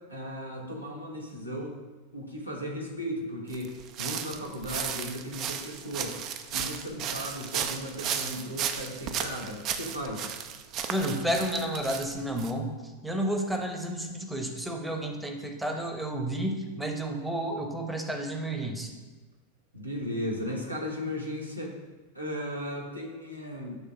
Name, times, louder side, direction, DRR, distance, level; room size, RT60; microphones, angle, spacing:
voice 1, 0.1-1.7 2.1-3.7 4.0-6.2 6.5-10.3 19.7-21.7 22.1-23.8, equal, 85° right, -2 dB, 1.2 m, -36 dB
sound 1, 3.5-12.5, right 8 dB, 35° right, 0.4 m, -34 dB
voice 2, 10.9-18.9, right 1 dB, 5° right, 3 dB, 0.8 m, -31 dB
7.9 x 3.3 x 3.8 m, 1.2 s
figure-of-eight pair, 90°, 0 cm